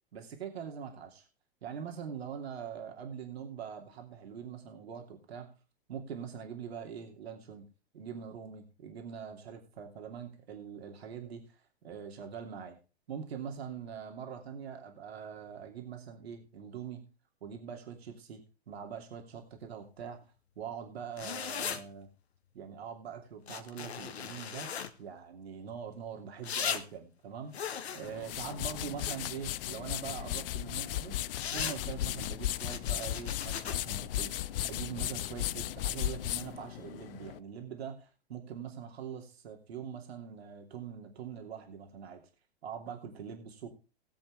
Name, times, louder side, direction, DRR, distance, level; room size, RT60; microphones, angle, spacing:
voice 1, 0.1-1.2 1.6-5.5 5.9-7.7 7.9-11.5 11.8-12.8 13.1-17.0 17.4-20.2 20.6-22.1 22.5-24.7 25.0-27.6 27.9-31.2 31.5-34.3 34.6-42.2 42.6-43.7, right 7 dB, 70° right, 3 dB, 2.9 m, -43 dB
sound 1, 21.2-21.8 23.5-24.9 26.4-26.8 27.5-29.5 31.3-31.8 32.5-33.7, left 7 dB, 70° left, 1.5 m, -37 dB
sound 2, 28.0-37.4, left 13 dB, 55° left, 0.7 m, -36 dB
19.5 x 8.0 x 3.4 m, 0.33 s
figure-of-eight pair, 100°, 33 cm